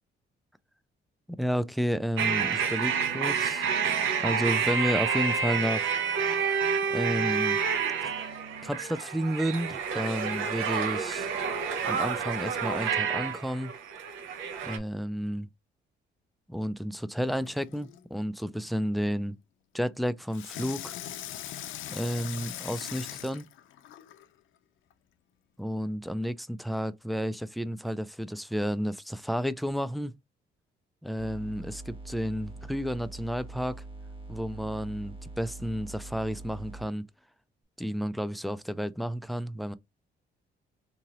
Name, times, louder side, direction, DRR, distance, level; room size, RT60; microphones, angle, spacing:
voice 1, 1.4-3.7 4.2-5.9 6.9-7.6 8.2-8.3 8.6-11.3 11.8-13.8 14.6-15.5 16.5-19.4 19.7-21.0 21.9-23.4 25.6-30.1 31.0-33.8 34.3-37.0 37.8-39.7, equal, ahead, 0.3 m, -31 dB
sound 1, 2.2-14.8, right 6 dB, 80° right, 0.8 m, -29 dB
Water tap faucet / Sink (filling or washing), 17.3-18.0 20.3-24.3 24.9-25.0, left 11 dB, 85° left, 0.5 m, -41 dB
sound 2, 31.2-36.9, right 2 dB, 25° right, 1.0 m, -43 dB
3.8 x 2.8 x 2.9 m
cardioid pair, 90°, 20 cm